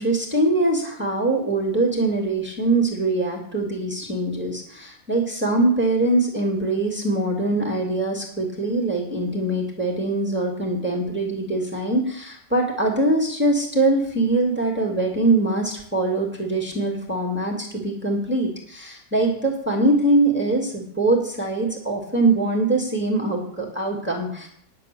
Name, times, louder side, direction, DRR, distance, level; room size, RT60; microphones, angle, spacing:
voice 1, 0.0-24.5, right 2 dB, 5° right, -1 dB, 2.2 m, -23 dB
10.5 x 8.3 x 6.8 m, 0.64 s
omnidirectional pair, 1.5 m